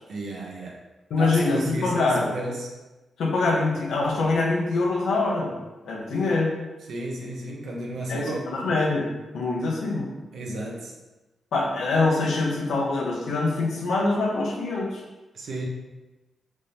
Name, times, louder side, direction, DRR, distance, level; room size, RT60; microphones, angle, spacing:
voice 1, 0.1-0.8 1.2-2.7 6.9-8.5 10.3-10.9 15.3-15.7, right 1 dB, 70° right, -2 dB, 1.3 m, -32 dB
voice 2, 1.1-2.3 3.2-5.6 5.8-6.5 8.1-9.1 9.3-10.1 11.5-15.0, left 3 dB, 85° left, -3 dB, 1.5 m, -24 dB
5.2 x 3.6 x 5.5 m, 1.1 s
wide cardioid pair, 160°, 0 cm